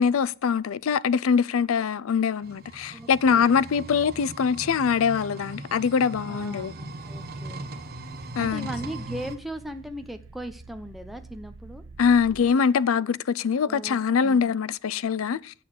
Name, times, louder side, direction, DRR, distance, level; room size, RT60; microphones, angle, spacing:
voice 1, 0.0-6.7 8.4-8.7 12.0-15.5, left 6 dB, 80° left, 0.4 m, -23 dB
sound 1, 2.4-9.4, right 2 dB, 50° right, 1.1 m, -39 dB
voice 2, 2.9-3.5 3.7-3.8 6.2-7.6 8.3-11.8 13.6-14.5, right 1 dB, ahead, 0.7 m, -38 dB
sound 2, 6.6-12.5, right 3 dB, 85° right, 1.1 m, -49 dB
8.4 x 6.8 x 7.5 m
head